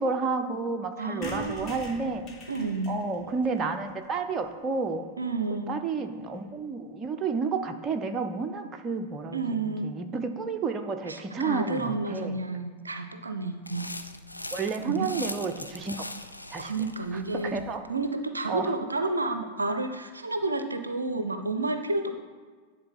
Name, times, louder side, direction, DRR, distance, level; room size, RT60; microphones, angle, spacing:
voice 1, 0.0-2.2 2.9-5.1 5.7-12.4 14.5-16.1 16.5-16.7 17.3-17.8 18.5-18.7, right 4 dB, 25° right, 6 dB, 0.7 m, -31 dB
voice 2, 1.0-1.8 2.5-3.0 5.2-5.7 9.3-9.9 11.1-14.0 14.9-15.2 16.6-17.6 17.9-22.1, right 3 dB, 80° right, 8 dB, 0.5 m, -30 dB
sound 1, 1.2-4.9 5.3-5.4 5.6-5.7 5.9-6.0 6.2-6.5, left 3 dB, 30° left, 1.8 m, -46 dB
sound 2, 13.7-17.8, left 1 dB, 85° left, 0.4 m, -40 dB
10.5 x 3.9 x 5.6 m, 1.5 s
figure-of-eight pair, 90°, 0 cm